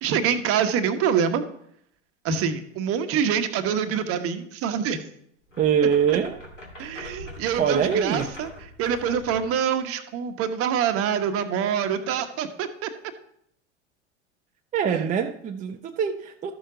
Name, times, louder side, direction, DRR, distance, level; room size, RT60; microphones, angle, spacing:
voice 1, 0.0-1.4 2.2-5.0 6.8-8.5 8.8-12.9 14.9-15.0, right 8 dB, 40° right, 8 dB, 1.2 m, -25 dB
sound 1, 5.5-9.6, left 1 dB, 90° left, 2.6 m, -41 dB
voice 2, 5.6-6.4 7.6-8.3 14.7-16.5, right 7 dB, 20° right, 4 dB, 0.6 m, -23 dB
13.0 x 6.5 x 3.9 m, 0.70 s
figure-of-eight pair, 85°, 35 cm